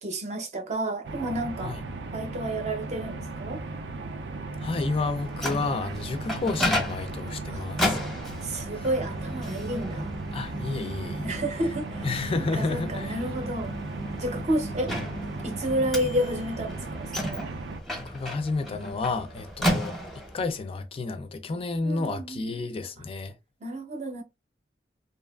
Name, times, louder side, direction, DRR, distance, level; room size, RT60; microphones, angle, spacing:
voice 1, 0.0-1.8 2.1-3.6 7.5-7.7 8.4-10.1 11.2-12.1 12.3-13.7 14.2-14.9 15.4-17.5 21.8-22.5 23.6-24.2, right 1 dB, 40° right, 0.6 m, -31 dB
sound 1, 1.0-17.8, right 3 dB, 85° right, 0.4 m, -36 dB
voice 2, 4.6-8.0 8.8-8.9 10.3-11.3 12.0-13.2 18.0-19.9 20.3-23.3, left 3 dB, 35° left, 0.3 m, -31 dB
Microwave oven, 5.0-20.5, equal, ahead, 0.7 m, -34 dB
2.7 x 2.3 x 2.2 m
head